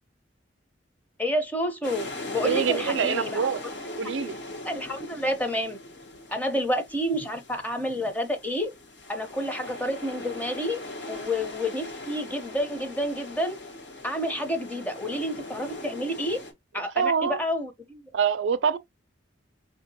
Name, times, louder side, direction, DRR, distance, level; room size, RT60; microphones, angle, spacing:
voice 1, 1.2-3.5 3.8-3.9 4.6-5.8 6.3-8.7 9.1-10.8 11.1-13.6 14.0-16.4 16.7-18.1, equal, 10° left, 0.7 m, -29 dB
sound 1, 1.8-16.5, left 2 dB, 65° left, 1.1 m, -39 dB
voice 2, 2.4-3.6 4.0-4.4 16.9-17.4 18.1-18.8, right 6 dB, 80° right, 0.4 m, -25 dB
4.5 x 2.8 x 2.7 m
head